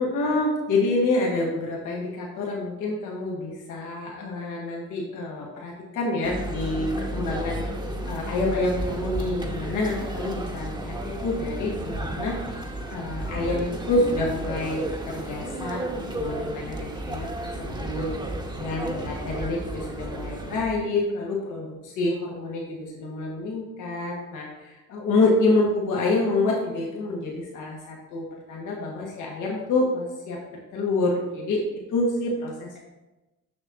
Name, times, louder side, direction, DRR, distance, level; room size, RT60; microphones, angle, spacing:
voice 1, 0.0-7.7 8.1-12.3 12.9-18.1 18.6-31.6 31.9-32.7, left 2 dB, 85° left, -2 dB, 1.5 m, -27 dB
sound 1, 6.2-20.6, right 1 dB, 15° right, 0.9 m, -34 dB
sound 2, 6.3-16.0 16.9-20.8, equal, 20° left, 0.7 m, -38 dB
6.9 x 6.2 x 2.7 m, 1.0 s
cardioid pair, 90°, 30 cm